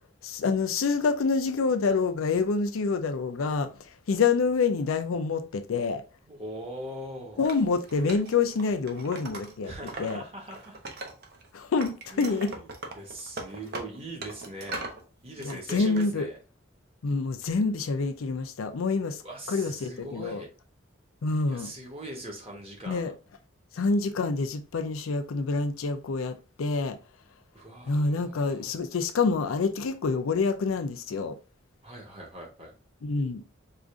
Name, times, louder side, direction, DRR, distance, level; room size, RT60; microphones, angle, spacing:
voice 1, 0.2-6.0 7.4-9.7 10.0-10.2 11.5-12.5 15.4-16.3 17.0-19.2 19.5-20.4 21.2-21.7 22.9-23.1 23.7-27.0 27.9-31.4 33.0-33.4, left 4 dB, 85° left, 0.5 m, -27 dB
voice 2, 6.3-7.6 9.6-10.8 12.1-14.9 15.2-16.4 19.2-20.5 21.5-23.1 27.5-28.8 31.8-32.7, right 1 dB, 30° right, 1.0 m, -41 dB
Wood, 7.4-10.1 10.4-11.5 11.8-15.0 15.4-16.1, right 2 dB, 50° right, 0.7 m, -40 dB
4.9 x 2.5 x 2.4 m
head